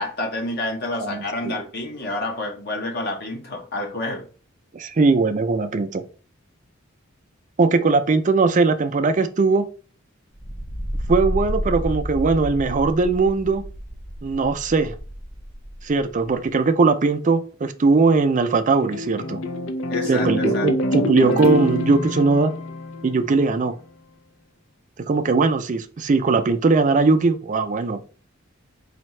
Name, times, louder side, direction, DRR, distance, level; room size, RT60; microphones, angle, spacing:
voice 1, 0.0-4.3 19.9-20.7, left 2 dB, 55° left, 0.8 m, -29 dB
voice 2, 1.0-1.5 4.7-6.0 7.6-9.7 11.1-13.6 14.2-15.0 15.8-19.4 20.1-22.5 23.0-23.7 25.1-28.0, right 4 dB, 40° right, 0.4 m, -20 dB
sound 1, 10.3-16.4, equal, 25° left, 0.9 m, -30 dB
sound 2, 18.0-23.6, left 1 dB, 85° left, 0.5 m, -26 dB
4.2 x 2.7 x 3.1 m
head